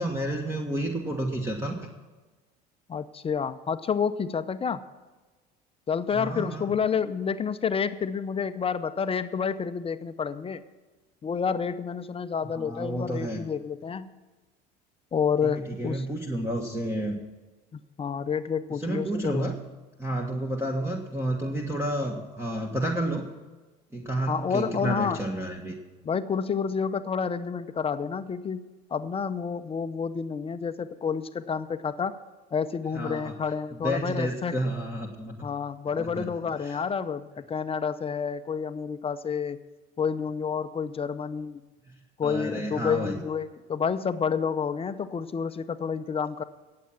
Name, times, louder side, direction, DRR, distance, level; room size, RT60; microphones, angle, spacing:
voice 1, 0.0-1.9 6.1-6.7 12.5-13.4 15.4-17.2 18.7-19.5 20.0-23.3 23.9-25.8 32.9-33.3 33.8-35.4 36.0-36.3 36.6-36.8 41.9-43.2, right 1 dB, 10° right, 1 dB, 1.6 m, -30 dB
voice 2, 2.9-4.8 5.9-10.6 11.2-14.1 15.1-16.1 17.7-19.5 24.3-25.2 26.0-28.6 28.9-32.2 32.5-34.6 35.4-39.6 40.0-41.6 42.2-46.4, left 6 dB, 25° left, 11 dB, 0.6 m, -29 dB
17.5 x 7.7 x 6.0 m, 1.2 s
supercardioid pair, 90°, 21 cm